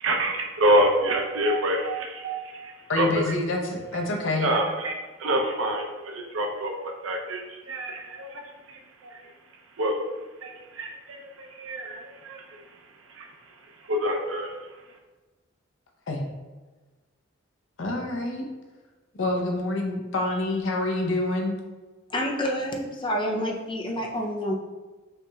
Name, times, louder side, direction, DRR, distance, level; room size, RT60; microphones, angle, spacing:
voice 1, 0.0-3.4 4.4-5.9 6.1-6.7 7.0-8.4 8.7-9.2 9.8-10.0 10.4-12.8 13.1-13.3 13.8-14.6, right 1 dB, 80° right, 2 dB, 0.7 m, -27 dB
voice 2, 2.9-4.5 16.1-16.2 17.8-18.5 19.1-21.6, left 2 dB, 70° left, 2 dB, 0.7 m, -27 dB
voice 3, 22.1-24.5, equal, 25° left, 0 dB, 0.5 m, -28 dB
5.5 x 2.9 x 2.3 m, 1.2 s
head